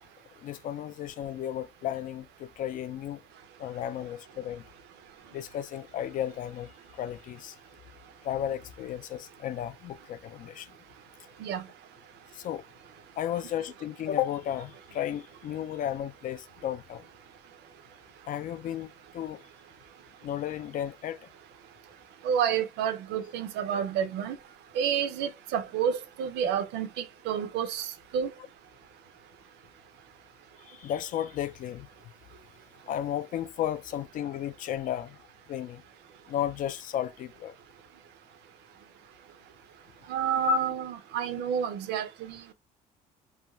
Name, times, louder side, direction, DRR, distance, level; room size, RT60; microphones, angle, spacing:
voice 1, 0.4-3.2 3.6-4.6 5.3-7.5 8.2-10.7 12.3-12.6 13.2-17.0 18.3-19.4 20.2-21.2 30.7-31.9 32.9-35.2 35.5-35.8 36.3-37.5 40.4-40.6, left 11 dB, 55° left, 0.4 m, -33 dB
voice 2, 22.2-24.4 24.8-27.9 28.1-28.3 40.1-42.5, right 8 dB, 80° right, 0.5 m, -29 dB
2.4 x 2.2 x 2.9 m
cardioid pair, 110°, 17 cm